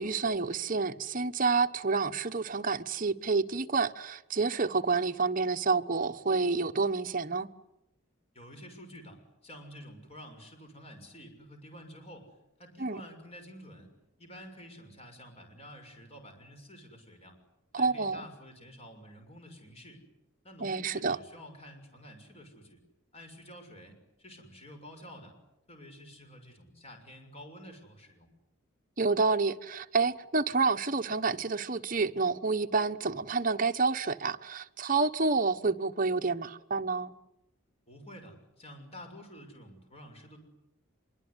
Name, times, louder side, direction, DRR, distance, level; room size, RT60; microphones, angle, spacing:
voice 1, 0.0-7.5 12.8-13.0 17.7-18.2 20.6-21.2 29.0-37.1, right 4 dB, 40° right, 1.1 m, -29 dB
voice 2, 8.3-13.9 14.2-17.4 17.8-20.0 20.4-22.8 23.1-25.3 25.7-28.3 37.9-40.4, equal, 30° left, 6.4 m, -50 dB
25.5 x 23.5 x 9.7 m
head